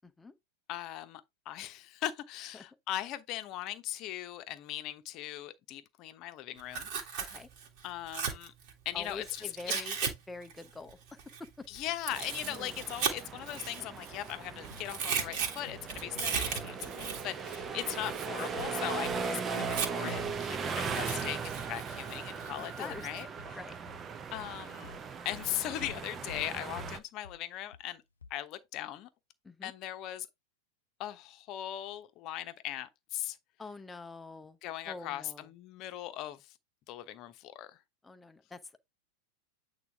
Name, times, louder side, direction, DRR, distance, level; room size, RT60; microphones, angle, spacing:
voice 1, 0.7-7.3 7.8-8.5 8.8-9.9 11.7-23.6 24.3-24.9 25.2-28.0 28.3-29.1 29.6-30.3 31.0-33.4 34.6-36.6 36.9-37.8, left 13 dB, 40° left, 1.0 m, -39 dB
Tearing, 6.6-10.1 10.4-14.3 14.6-20.2 20.7-23.2, right 6 dB, 45° right, 2.1 m, -37 dB
voice 2, 8.9-10.0 10.3-11.7 16.7-16.9 18.1-18.4 20.6-20.8 22.8-23.1 23.5-23.8 29.4-29.7 33.6-34.6 34.9-35.5 38.0-38.8, left 3 dB, 10° left, 0.8 m, -46 dB
sound 1, 12.1-27.0, right 6 dB, 25° right, 0.8 m, -39 dB
sound 2, 14.7-14.9 15.2-15.4 15.7-15.9 16.1-16.4 16.6-16.8 17.1-17.2 17.6-17.7 18.1-18.2 18.6-18.8 19.0-19.2 19.5-21.6 21.9-22.0 22.4-22.5 22.9-23.0 23.4-23.5 23.9-24.0 24.3-24.5 24.8-25.0 25.3-25.5 25.8-26.0 26.3-26.5 26.8-27.0 27.2-27.4 27.7-27.8 28.2-28.3, left 4 dB, 75° left, 0.5 m, -48 dB
8.6 x 3.8 x 3.5 m
figure-of-eight pair, 90°, 0 cm